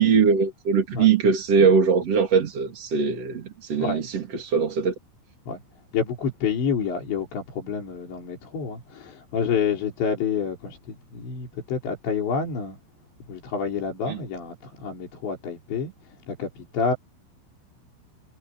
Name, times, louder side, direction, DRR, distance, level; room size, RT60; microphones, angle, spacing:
voice 1, 0.0-4.9 14.1-14.2, right 6 dB, 35° right, 3.2 m, -21 dB
voice 2, 5.9-12.8 13.3-15.9 16.3-16.9, left 6 dB, 60° left, 7.3 m, -28 dB
omnidirectional pair, 5.9 m